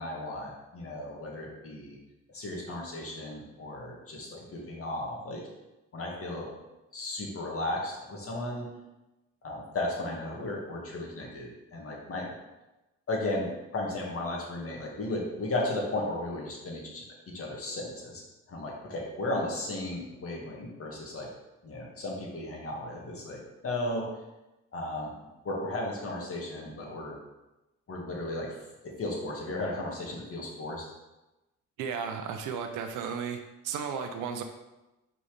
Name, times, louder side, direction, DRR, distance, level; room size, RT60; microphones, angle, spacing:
voice 1, 0.0-2.0 2.3-5.4 5.9-6.5 6.9-8.7 9.4-12.3 13.1-18.2 18.5-21.3 21.6-24.1 24.7-25.1 25.4-27.2 27.9-28.6 28.8-30.9, left 2 dB, 50° left, -1 dB, 2.0 m, -35 dB
voice 2, 31.8-33.4 33.6-34.4, right 6 dB, 85° right, 6 dB, 0.7 m, -34 dB
5.4 x 4.2 x 5.0 m, 1.0 s
cardioid pair, 90°, 30 cm